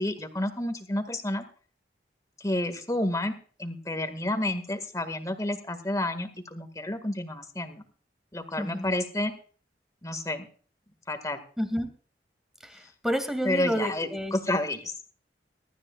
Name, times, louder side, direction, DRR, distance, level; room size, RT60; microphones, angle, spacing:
voice 1, 0.0-1.5 2.4-7.8 8.3-9.3 10.0-10.5 11.1-11.4 13.4-14.9, left 1 dB, 20° left, 9 dB, 1.9 m, -30 dB
voice 2, 8.6-8.9 11.6-11.9 12.6-14.4, equal, ahead, 7 dB, 2.3 m, -30 dB
23.0 x 13.0 x 2.4 m, 0.43 s
head